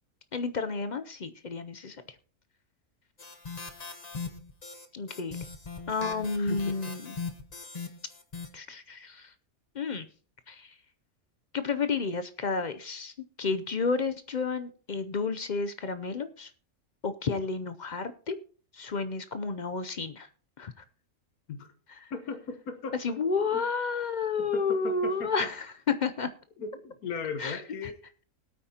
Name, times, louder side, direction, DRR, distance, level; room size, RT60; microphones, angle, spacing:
voice 1, 0.3-2.0 4.9-5.4 5.9-7.1 8.5-9.3 9.7-10.1 10.5-10.7 11.5-13.1 13.4-16.5 17.0-18.4 18.7-20.3 20.6-20.7 22.0-22.1 23.0-26.3 27.4-27.6, left 4 dB, 50° left, 11 dB, 0.5 m, -31 dB
sound 1, 3.2-8.5, left 4 dB, 30° left, 1.0 m, -40 dB
voice 2, 6.4-6.9 21.5-21.7 22.1-23.6 24.4-25.5 26.6-27.9, left 5 dB, 85° left, 7 dB, 1.5 m, -38 dB
20.5 x 8.8 x 2.8 m, 0.41 s
omnidirectional pair, 1.5 m